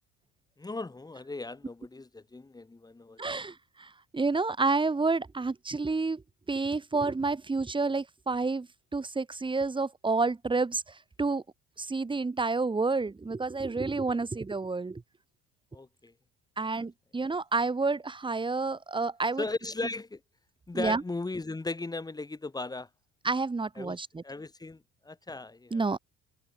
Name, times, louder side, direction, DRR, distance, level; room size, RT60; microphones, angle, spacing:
voice 1, 0.6-3.4 15.7-16.1 19.4-20.2 20.7-22.9 23.8-24.0 24.2-24.8 25.0-26.0, left 3 dB, 10° left, 4.9 m, -37 dB
voice 2, 3.2-3.5 4.1-6.2 6.5-8.7 8.9-10.8 11.2-11.4 11.8-15.0 16.6-19.4 20.7-21.0 23.2-24.2 25.7-26.0, right 3 dB, 15° right, 5.7 m, -29 dB
cardioid pair, 165°, 34 cm